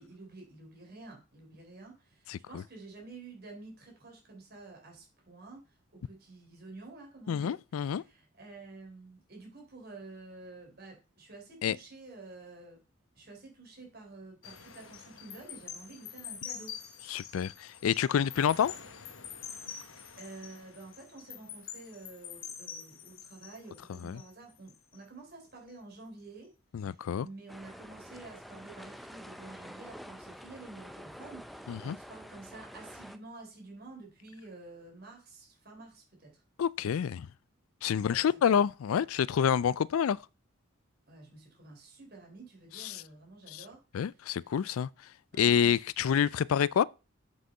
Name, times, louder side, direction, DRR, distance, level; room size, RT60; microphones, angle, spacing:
voice 1, 0.0-5.6 5.9-12.8 13.2-16.8 20.2-26.5 26.8-36.4 37.9-38.6 41.1-43.8 45.3-45.7 46.0-46.1, right 3 dB, 50° right, 4.0 m, -50 dB
voice 2, 2.3-2.6 7.3-8.0 11.6-11.8 17.1-18.7 24.0-24.2 26.7-27.3 31.7-32.0 36.6-37.3 37.8-40.2 42.8-43.0 43.5-43.6 43.9-44.9 45.4-46.8, left 8 dB, 90° left, 0.4 m, -28 dB
sound 1, 14.4-25.0 25.4-25.7, left 8 dB, 75° left, 1.3 m, -46 dB
sound 2, 27.5-33.2, equal, ahead, 0.5 m, -48 dB
7.6 x 6.5 x 5.5 m
head